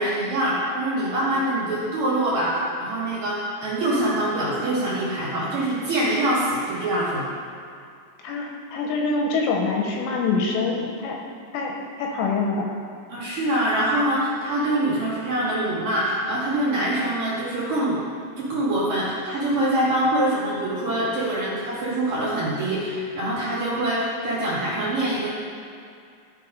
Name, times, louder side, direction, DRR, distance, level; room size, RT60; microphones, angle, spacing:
voice 1, 0.0-7.3 13.1-18.0 18.2-25.3, right 1 dB, 50° right, -9 dB, 3.3 m, -24 dB
voice 2, 8.2-11.2 11.5-12.7, left 4 dB, 80° left, 0 dB, 3.2 m, -25 dB
14.0 x 4.7 x 5.2 m, 2.4 s
omnidirectional pair, 5.9 m